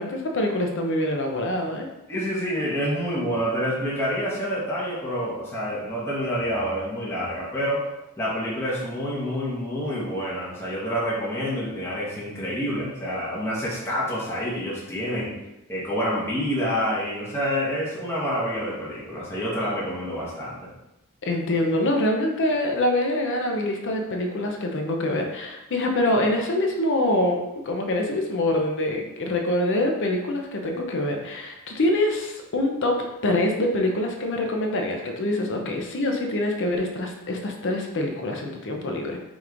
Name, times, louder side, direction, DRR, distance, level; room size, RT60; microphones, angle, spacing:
voice 1, 0.0-1.9 21.2-39.2, left 1 dB, 55° left, 2 dB, 0.6 m, -25 dB
voice 2, 2.1-7.8 8.2-15.4 15.7-20.7, equal, 10° left, -7 dB, 1.1 m, -27 dB
5.2 x 3.0 x 2.5 m, 0.95 s
head